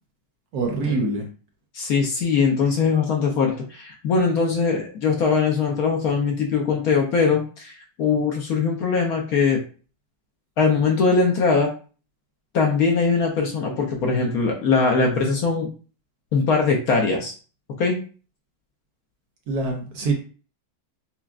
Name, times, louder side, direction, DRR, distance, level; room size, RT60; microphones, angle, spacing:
voice 1, 0.5-1.3 19.5-20.1, right 3 dB, 65° right, 2 dB, 1.1 m, -24 dB
voice 2, 1.7-7.7 8.0-9.6 10.6-11.7 12.5-15.7 16.3-17.3 17.8-18.0, left 4 dB, 65° left, 1 dB, 1.0 m, -21 dB
5.8 x 2.1 x 2.4 m, 0.38 s
omnidirectional pair, 2.0 m